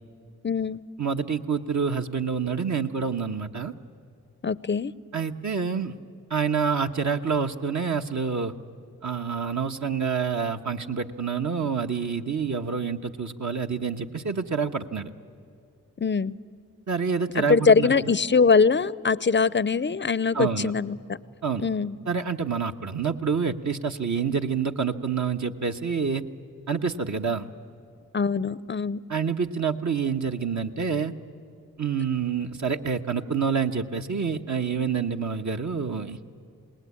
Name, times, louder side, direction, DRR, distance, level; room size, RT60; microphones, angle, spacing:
voice 1, 0.4-0.8 4.4-4.9 16.0-16.4 17.3-21.2 21.6-22.0 28.1-29.0, left 5 dB, 30° left, 20 dB, 0.7 m, -22 dB
voice 2, 1.0-3.7 5.1-5.9 6.3-8.5 9.0-15.1 16.9-18.1 20.3-20.7 21.4-21.7 22.1-26.2 26.7-27.5 29.1-31.1 31.8-36.2, right 6 dB, 50° right, 5 dB, 1.4 m, -27 dB
27.5 x 19.5 x 8.6 m, 2.6 s
supercardioid pair, 40°, 38 cm